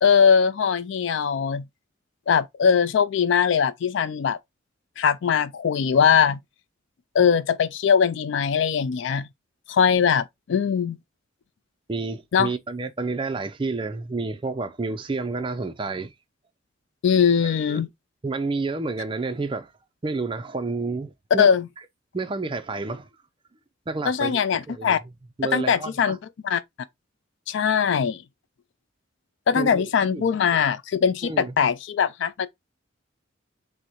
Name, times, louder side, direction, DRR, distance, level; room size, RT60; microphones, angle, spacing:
voice 1, 0.0-1.6 2.3-4.4 5.0-6.4 7.1-9.3 9.7-11.0 12.3-12.5 17.0-17.9 21.4-21.7 24.1-25.0 25.5-26.2 26.4-26.6 27.5-28.2 29.5-32.5, left 7 dB, 60° left, 0.3 m, -21 dB
voice 2, 11.9-16.1 17.4-17.8 18.2-19.7 20.0-21.5 22.1-23.1 23.9-25.0 25.4-26.2 29.6-30.3 31.2-31.5, right 3 dB, 25° right, 0.4 m, -30 dB
6.2 x 2.1 x 2.9 m
head